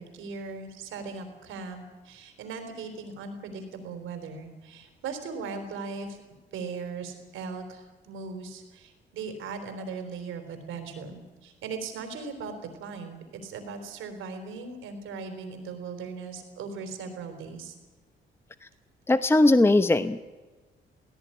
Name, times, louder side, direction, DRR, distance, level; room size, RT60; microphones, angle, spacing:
voice 1, 0.0-6.2 6.5-12.5 12.8-17.7, right 4 dB, 85° right, 6 dB, 3.9 m, -38 dB
voice 2, 19.1-20.3, left 2 dB, 10° left, 11 dB, 0.9 m, -20 dB
17.0 x 17.0 x 9.9 m, 1.2 s
cardioid pair, 90°, 20 cm